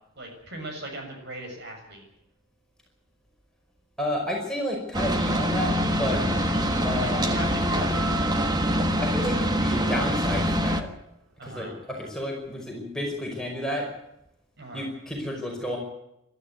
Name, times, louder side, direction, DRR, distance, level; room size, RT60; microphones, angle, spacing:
voice 1, 0.2-2.0 7.0-8.6 11.4-11.8 14.6-14.9, right 1 dB, 50° right, 3 dB, 6.9 m, -38 dB
voice 2, 4.0-6.2 6.8-7.3 9.0-10.9 11.4-13.9 14.7-15.8, left 1 dB, 5° left, -1 dB, 5.3 m, -31 dB
sound 1, 4.9-10.8, equal, 20° right, 1.4 m, -25 dB
sound 2, 5.6-8.6, left 1 dB, 40° left, 1.1 m, -39 dB
sound 3, 7.9-10.4, right 7 dB, 80° right, 2.7 m, -40 dB
23.0 x 13.0 x 9.4 m, 0.84 s
head